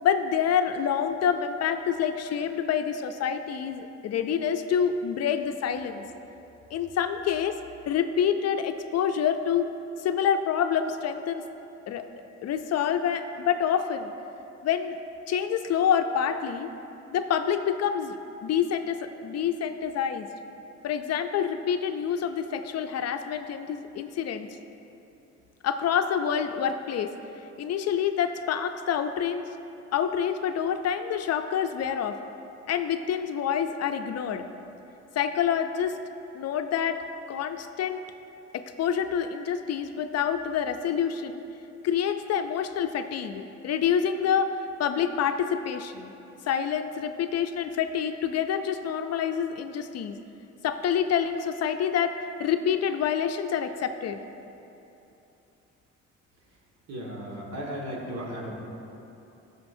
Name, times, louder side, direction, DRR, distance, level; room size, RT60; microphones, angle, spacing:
voice 1, 0.0-6.0 6.7-7.6 7.9-9.7 10.0-11.4 11.9-12.0 12.4-14.1 14.6-15.0 15.3-16.7 17.1-18.1 18.4-20.3 20.8-24.5 25.6-27.1 27.6-29.5 29.9-32.2 32.7-34.5 35.1-36.0 36.3-37.0 37.3-38.0 38.5-41.4 41.8-46.1 46.5-50.2 50.6-52.1 52.4-54.2, left 8 dB, 55° left, 8 dB, 0.5 m, -27 dB
voice 2, 56.9-58.6, equal, 60° right, -2 dB, 1.7 m, -35 dB
15.0 x 5.1 x 2.6 m, 2.9 s
cardioid pair, 90°, 30 cm